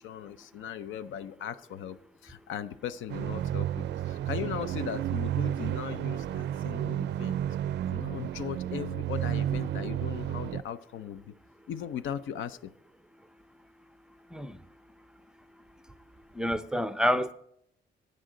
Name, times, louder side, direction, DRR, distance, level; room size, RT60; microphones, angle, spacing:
voice 1, 0.0-2.0 2.2-7.4 7.9-11.3 11.7-12.7, left 9 dB, 80° left, 0.6 m, -38 dB
sound 1, 3.1-10.6, right 11 dB, 60° right, 0.4 m, -32 dB
voice 2, 14.3-14.6 16.3-17.3, equal, 5° right, 0.5 m, -28 dB
12.5 x 9.1 x 3.9 m
cardioid pair, 90°, 20 cm